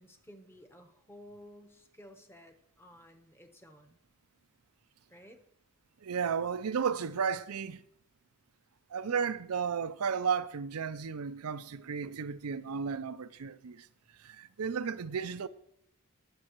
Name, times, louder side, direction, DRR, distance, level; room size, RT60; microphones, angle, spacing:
voice 1, 0.0-4.0 5.1-5.4, equal, 10° left, 0.9 m, -54 dB
voice 2, 6.0-7.8 8.9-13.9 14.2-15.5, right 6 dB, 85° right, 0.5 m, -33 dB
20.5 x 7.4 x 3.0 m
head